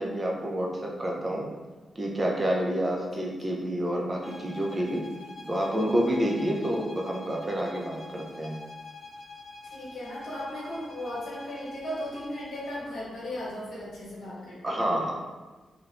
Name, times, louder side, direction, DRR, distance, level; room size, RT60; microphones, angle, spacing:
voice 1, 0.0-1.5 2.0-5.0 5.4-8.6 14.6-15.1, equal, 25° right, -1 dB, 0.4 m, -28 dB
sound 1, 4.2-12.9, left 2 dB, 55° left, 0.5 m, -45 dB
voice 2, 9.6-15.0, left 1 dB, 90° left, -6 dB, 1.0 m, -37 dB
3.0 x 2.1 x 2.4 m, 1.2 s
wide cardioid pair, 125°, 0 cm